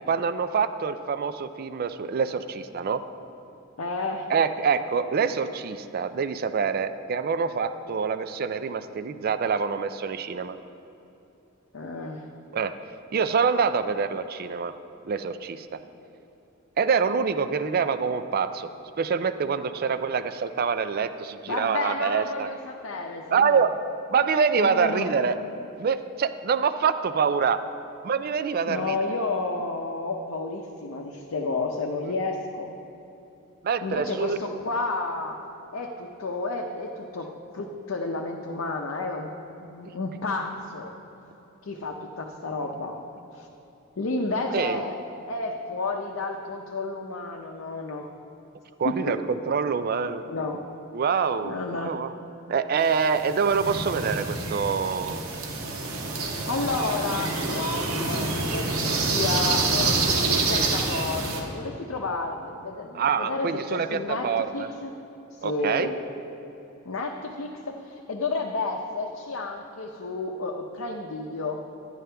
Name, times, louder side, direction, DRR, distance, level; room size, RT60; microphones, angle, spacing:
voice 1, 0.1-3.0 4.3-10.6 12.5-12.7 13.1-14.7 15.0-15.8 16.8-18.7 19.0-22.5 23.3-23.7 24.1-25.4 25.8-27.6 28.0-29.0 33.6-34.4 39.8-40.0 44.5-44.8 48.8-50.2 50.9-52.1 52.5-55.2 62.9-64.7 65.4-65.9, right 6 dB, 45° right, 11 dB, 0.4 m, -25 dB
voice 2, 3.8-4.3 11.7-12.3 21.5-23.7 24.6-25.1 28.7-32.7 33.8-35.4 35.7-39.3 39.6-40.9 41.6-43.0 43.3-43.5 44.0-44.9 45.3-48.1 48.8-49.2 50.3-50.6 51.4-52.0 56.5-64.9 65.3-65.9 66.9-71.6, left 3 dB, 70° left, 1 dB, 0.6 m, -31 dB
sound 1, 52.8-61.4, right 3 dB, 85° right, 1.3 m, -27 dB
11.0 x 10.5 x 3.4 m, 2.9 s
head